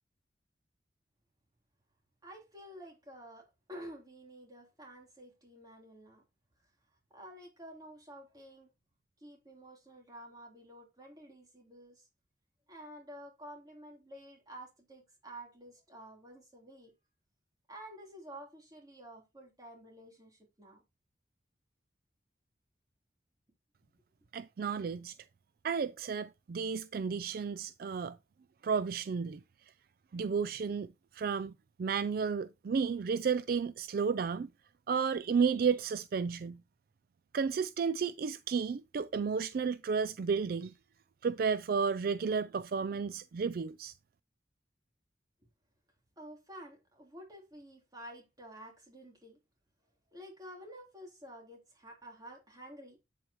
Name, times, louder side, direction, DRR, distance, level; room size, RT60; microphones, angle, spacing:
voice 1, 2.2-6.2 7.1-8.7 9.2-12.0 12.7-16.9 17.7-20.8 46.2-49.4 50.1-53.0, right 1 dB, 20° right, 3.3 m, -50 dB
voice 2, 24.3-25.1 25.6-28.2 28.6-29.4 30.1-30.9 31.1-31.5 31.8-34.5 34.9-36.6 37.3-40.7 41.2-43.9, right 5 dB, 55° right, 0.3 m, -32 dB
8.5 x 7.8 x 3.0 m
head